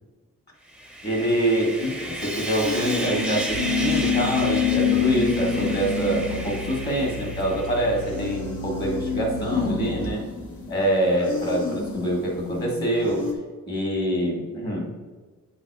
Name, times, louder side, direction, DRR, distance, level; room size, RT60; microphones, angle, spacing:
Sawing, 0.7-8.1, right 1 dB, 5° right, 0.8 m, -33 dB
voice 1, 1.0-10.2 10.7-13.2 13.7-14.9, right 1 dB, 30° left, -2 dB, 1.8 m, -25 dB
sound 1, 2.6-7.7 8.0-13.3, left 6 dB, 65° left, 1.7 m, -28 dB
sound 2, 3.5-10.1, left 1 dB, 60° right, 0.7 m, -36 dB
8.8 x 4.0 x 4.7 m, 1.4 s
wide cardioid pair, 165°, 32 cm